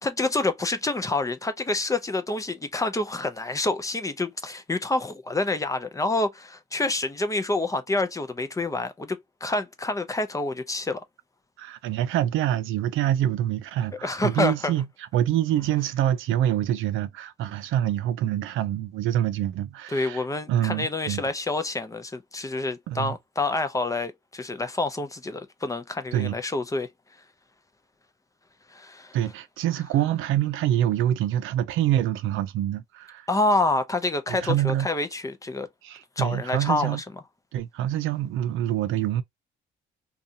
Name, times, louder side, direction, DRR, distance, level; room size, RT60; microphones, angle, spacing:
voice 1, 0.0-11.0 13.9-14.7 19.9-26.9 28.7-29.2 33.3-35.7 36.2-37.0, left 2 dB, 15° left, 0.4 m, -27 dB
voice 2, 11.6-14.8 15.1-20.2 20.5-21.2 22.9-23.1 26.1-26.4 29.1-33.3 34.3-34.9 35.8-37.0 37.5-39.2, right 12 dB, 85° right, 0.5 m, -26 dB
2.6 x 2.3 x 2.6 m
cardioid pair, 90°, 20 cm